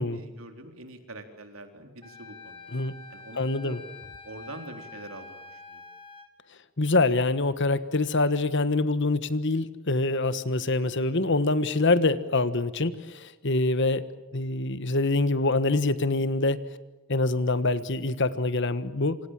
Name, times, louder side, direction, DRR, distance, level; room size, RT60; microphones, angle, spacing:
voice 1, 0.0-2.6 3.1-3.8 4.2-5.8, right 2 dB, 70° right, 6 dB, 3.9 m, -44 dB
Wind instrument woodwind instrument, 2.0-6.3, left 3 dB, 25° left, 2.2 m, -46 dB
voice 2, 3.4-3.8 6.8-14.1 14.3-16.6 17.1-19.2, left 2 dB, 55° left, 14 dB, 1.4 m, -25 dB
28.0 x 26.5 x 7.6 m, 1.0 s
head